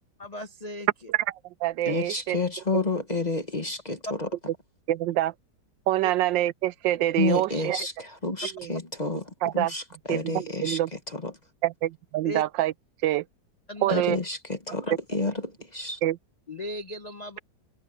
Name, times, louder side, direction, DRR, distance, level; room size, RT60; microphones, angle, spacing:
voice 1, 0.2-0.9 6.0-6.1 12.2-12.4 13.7-14.1 14.7-14.8 16.5-17.4, left 1 dB, 65° left, 0.4 m, -36 dB
voice 2, 1.1-2.4 2.7-2.8 4.9-5.3 5.9-7.8 8.6-8.7 9.4-9.7 10.1-10.9 11.6-12.7 13.0-13.2 13.8-14.2 16.0-16.2, right 14 dB, 85° right, 1.3 m, -26 dB
voice 3, 1.8-4.3 7.2-9.2 9.5-10.8 11.1-11.3 13.9-16.0, left 3 dB, 25° left, 1.1 m, -30 dB
omnidirectional pair, 2.0 m